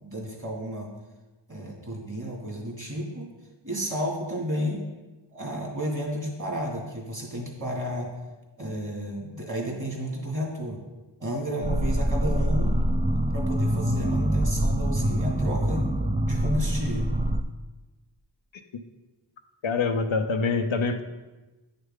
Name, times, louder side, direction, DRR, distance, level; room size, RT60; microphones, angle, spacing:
voice 1, 0.0-0.9 1.5-3.3 3.6-4.8 5.3-8.1 8.6-10.8 11.2-12.7 13.3-15.9 16.2-17.1, equal, 40° right, -1 dB, 2.3 m, -32 dB
sound 1, 11.6-17.4, right 1 dB, 15° right, 0.4 m, -25 dB
voice 2, 19.6-21.0, left 4 dB, 85° left, 6 dB, 0.7 m, -25 dB
9.1 x 6.6 x 3.7 m, 1.1 s
wide cardioid pair, 50°, 46 cm